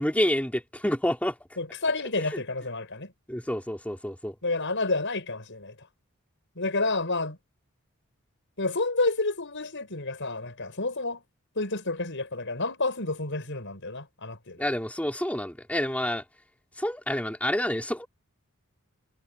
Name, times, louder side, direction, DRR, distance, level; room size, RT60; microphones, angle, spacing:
voice 1, 0.0-1.4 2.2-2.3 3.3-4.3 14.6-16.2 16.8-18.1, left 1 dB, 5° left, 3.5 m, -28 dB
voice 2, 1.6-3.1 4.4-5.7 6.6-7.4 8.6-11.2 11.6-14.6, left 3 dB, 60° left, 7.1 m, -29 dB
head